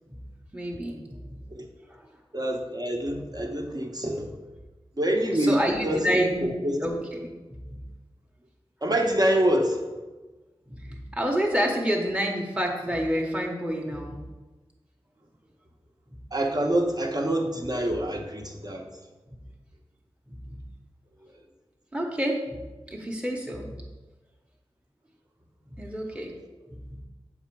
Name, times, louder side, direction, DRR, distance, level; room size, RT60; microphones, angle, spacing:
voice 1, 0.5-1.4 5.4-6.5 6.8-7.3 7.7-7.8 10.7-14.2 20.3-20.6 21.9-22.6 22.9-23.8 25.8-26.3 26.7-27.0, equal, 10° right, -1 dB, 1.0 m, -28 dB
voice 2, 2.3-4.3 5.0-6.3 6.6-6.8 8.8-9.8 16.3-18.8, right 1 dB, 40° right, 2 dB, 1.0 m, -26 dB
7.0 x 3.9 x 4.6 m, 1.2 s
wide cardioid pair, 45°, 10 cm